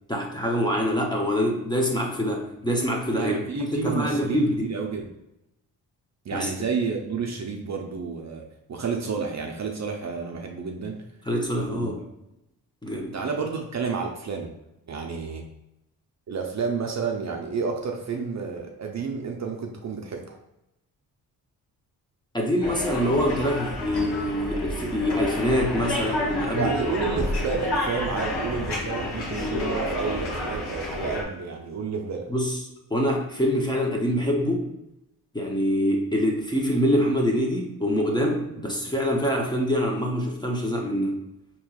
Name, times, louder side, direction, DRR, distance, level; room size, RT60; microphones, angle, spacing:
voice 1, 0.1-4.7 6.3-6.5 11.3-12.0 12.8-13.1 22.3-26.7 32.3-32.6 32.9-34.7 35.3-41.2, equal, 10° left, -1 dB, 0.7 m, -25 dB
voice 2, 3.1-5.1 6.2-8.4 8.7-11.0 11.7-11.9 13.1-14.5 14.9-15.5 16.3-20.4 26.6-32.3, right 5 dB, 40° right, 2 dB, 0.6 m, -30 dB
sound 1, 22.6-31.2, left 1 dB, 70° left, 1.1 m, -30 dB
4.3 x 3.0 x 2.3 m, 0.87 s
cardioid pair, 75°, 41 cm